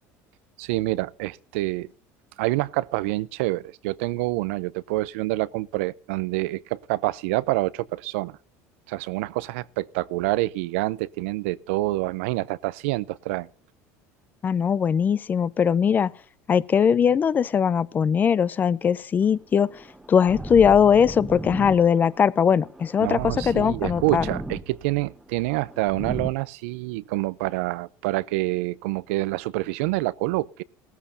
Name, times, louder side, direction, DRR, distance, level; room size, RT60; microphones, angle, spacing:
voice 1, 0.6-1.9 2.4-8.4 8.9-13.5 23.0-30.6, right 19 dB, 90° right, 0.6 m, -27 dB
voice 2, 14.4-16.1 16.5-19.7 20.1-24.2, left 7 dB, 25° left, 0.5 m, -20 dB
sound 1, 19.2-26.3, right 1 dB, 5° right, 1.2 m, -36 dB
18.5 x 14.0 x 2.8 m
cardioid pair, 135°, 7 cm